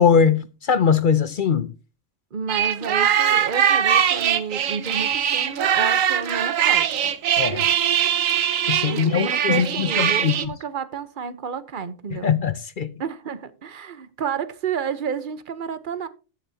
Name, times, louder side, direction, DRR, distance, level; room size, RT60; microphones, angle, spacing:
voice 1, 0.0-1.7 7.4-7.6 8.7-10.5 12.1-12.9, left 6 dB, 50° left, 0.6 m, -21 dB
voice 2, 2.3-7.1 8.9-12.3 13.0-16.1, right 6 dB, 45° right, 1.0 m, -31 dB
sound 1, 2.5-10.5, right 9 dB, 90° right, 1.3 m, -21 dB
14.5 x 9.4 x 2.8 m
omnidirectional pair, 1.3 m